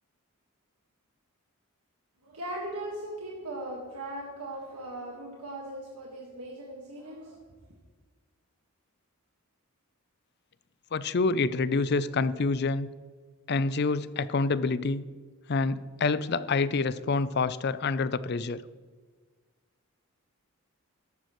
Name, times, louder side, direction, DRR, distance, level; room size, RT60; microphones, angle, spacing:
voice 1, 2.2-7.5, right 1 dB, 85° right, 1.8 m, -39 dB
voice 2, 10.9-12.9 13.5-15.0 15.5-18.6, left 3 dB, 45° left, 0.4 m, -27 dB
14.0 x 11.0 x 3.1 m
head